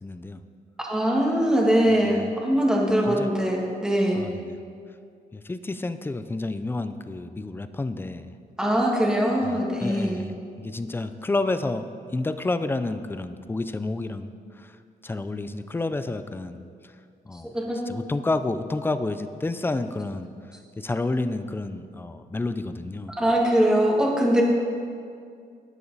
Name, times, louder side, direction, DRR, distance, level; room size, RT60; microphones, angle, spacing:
voice 1, 0.0-0.4 2.0-2.3 3.0-3.3 4.1-4.5 5.3-8.3 9.4-11.9 12.1-14.3 14.5-14.8 15.0-16.6 17.3-17.5 17.9-20.3 20.8-23.1, left 2 dB, 15° left, 11 dB, 0.4 m, -30 dB
voice 2, 0.9-4.2 8.6-10.2 17.3-17.8 23.2-24.4, equal, 5° right, -2 dB, 1.8 m, -22 dB
12.5 x 10.0 x 4.1 m, 2.3 s
cardioid pair, 140°, 17 cm